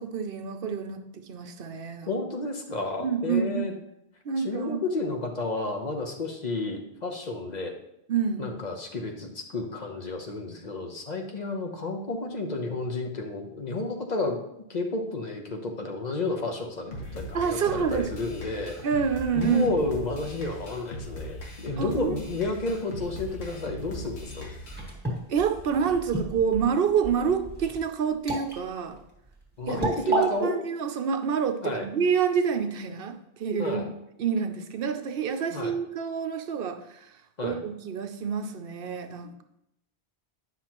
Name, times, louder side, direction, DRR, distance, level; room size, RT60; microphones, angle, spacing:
voice 1, 0.0-2.1 3.0-3.7 4.2-4.8 8.1-8.5 17.3-18.1 18.8-19.7 21.8-22.2 25.3-29.0 29.7-33.8 34.2-37.1 37.4-39.4, right 6 dB, 65° right, 7 dB, 0.8 m, -28 dB
voice 2, 2.1-3.7 4.4-7.7 8.4-14.4 14.7-18.7 19.3-24.5 29.6-30.5 31.6-31.8 33.6-33.9 35.5-35.7 37.4-37.6, left 2 dB, 45° left, 3 dB, 1.0 m, -31 dB
sound 1, 16.9-24.9, left 1 dB, 80° left, 1.5 m, -39 dB
sound 2, 24.0-30.3, right 1 dB, 10° right, 1.9 m, -33 dB
9.3 x 5.8 x 3.0 m, 0.80 s
omnidirectional pair, 1.1 m